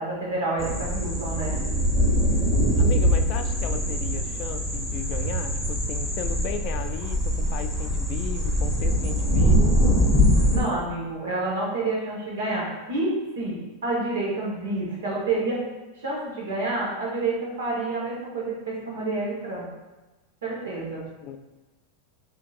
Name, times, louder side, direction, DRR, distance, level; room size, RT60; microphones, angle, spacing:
voice 1, 0.0-1.6 10.5-15.6 16.0-19.7 20.4-21.0, right 2 dB, 85° right, -4 dB, 1.4 m, -28 dB
sound 1, 0.6-10.6, equal, 15° right, 1.1 m, -23 dB
voice 2, 2.8-9.8 20.9-21.4, left 9 dB, 50° left, 8 dB, 0.4 m, -36 dB
5.7 x 2.8 x 2.5 m, 1.1 s
hypercardioid pair, 115°, 0 cm